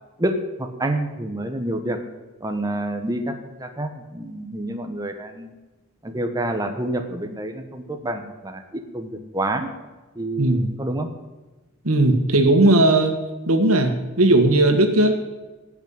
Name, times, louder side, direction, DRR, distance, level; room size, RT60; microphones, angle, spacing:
voice 1, 0.2-2.0 2.4-5.6 6.0-9.7 10.1-11.1, right 1 dB, 15° right, 5 dB, 1.1 m, -28 dB
voice 2, 10.4-10.7 11.8-13.1 13.5-15.3, right 2 dB, 85° right, 6 dB, 1.9 m, -17 dB
17.0 x 6.1 x 8.8 m, 1.2 s
head